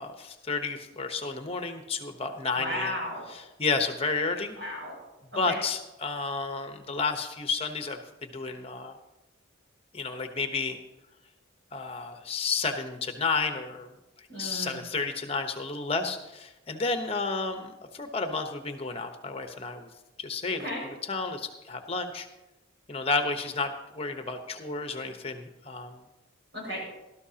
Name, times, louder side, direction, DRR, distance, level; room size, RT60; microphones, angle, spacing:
voice 1, 0.0-3.0 3.3-4.6 5.4-9.0 9.9-10.8 11.7-13.9 14.2-19.9 20.2-20.7 21.0-22.3 22.9-26.0, left 4 dB, 30° left, 6 dB, 1.0 m, -31 dB
voice 2, 2.6-3.2 4.6-5.0 5.3-5.6 14.3-14.8 20.6-20.9 26.5-26.8, left 1 dB, 70° right, -2 dB, 5.6 m, -34 dB
18.0 x 12.5 x 2.9 m, 0.99 s
head